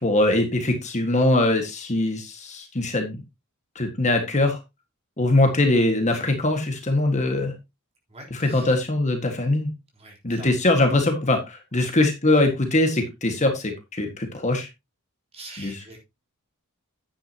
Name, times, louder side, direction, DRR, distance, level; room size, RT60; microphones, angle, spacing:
voice 1, 0.0-3.2 3.7-4.6 5.2-7.5 8.3-9.7 10.2-14.7 15.6-15.8, left 2 dB, 35° left, 1.7 m, -22 dB
voice 2, 8.1-8.8 9.9-10.5 11.7-11.9 15.3-16.0, right 2 dB, 30° right, 3.7 m, -44 dB
10.0 x 9.3 x 2.8 m
head